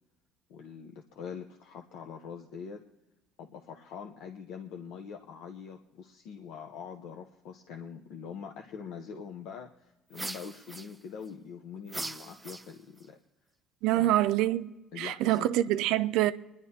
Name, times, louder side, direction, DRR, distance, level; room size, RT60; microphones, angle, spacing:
voice 1, 0.5-2.8 3.4-13.2 13.9-14.3 14.9-15.5, left 6 dB, 80° left, 0.8 m, -44 dB
sound 1, 10.1-11.3 11.9-13.1, right 2 dB, 10° right, 0.3 m, -40 dB
voice 2, 13.8-16.3, right 14 dB, 80° right, 0.5 m, -26 dB
27.0 x 11.0 x 2.8 m
cardioid pair, 140°, 0 cm